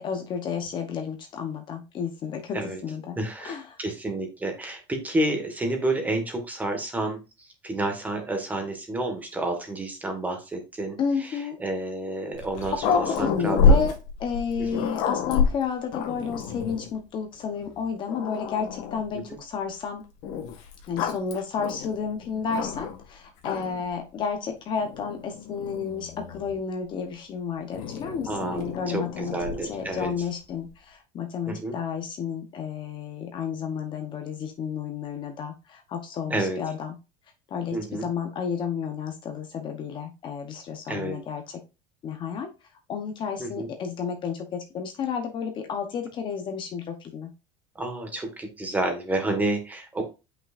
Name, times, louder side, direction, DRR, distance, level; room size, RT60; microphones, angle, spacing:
voice 1, 0.0-3.2 3.4-3.8 11.0-11.6 12.8-13.9 14.2-20.0 20.9-29.4 29.7-37.0 37.5-41.6 42.0-42.5 42.9-47.3, left 6 dB, 35° left, 5 dB, 0.9 m, -31 dB
voice 2, 3.2-7.2 7.6-13.8 14.6-14.9 28.3-30.1 31.5-31.8 36.3-36.6 37.7-38.1 40.9-41.2 43.4-43.7 47.8-50.1, right 2 dB, 10° right, 4 dB, 1.6 m, -30 dB
Growling, 12.3-16.9 17.6-17.7 18.1-19.1 20.2-23.0 23.4-23.9 24.8-26.6 27.7-30.3, left 4 dB, 65° left, 1.8 m, -28 dB
7.5 x 5.6 x 2.5 m, 0.28 s
cardioid pair, 150°, 14 cm